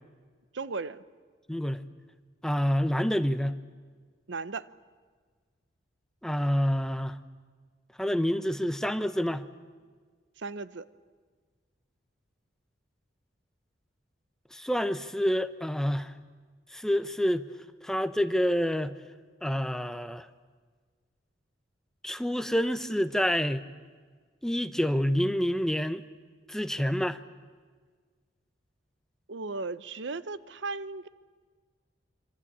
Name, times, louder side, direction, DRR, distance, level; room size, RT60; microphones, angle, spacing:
voice 1, 0.5-1.0 4.3-4.7 10.4-10.9 29.3-31.1, right 3 dB, 80° right, 15 dB, 0.8 m, -36 dB
voice 2, 1.5-1.9 2.4-3.6 6.2-7.2 8.0-9.4 14.5-16.1 16.7-17.5 17.8-18.9 19.4-20.3 22.0-23.6 24.4-26.0 26.5-27.2, equal, 5° left, 11 dB, 0.8 m, -27 dB
26.0 x 25.0 x 8.7 m, 1.5 s
head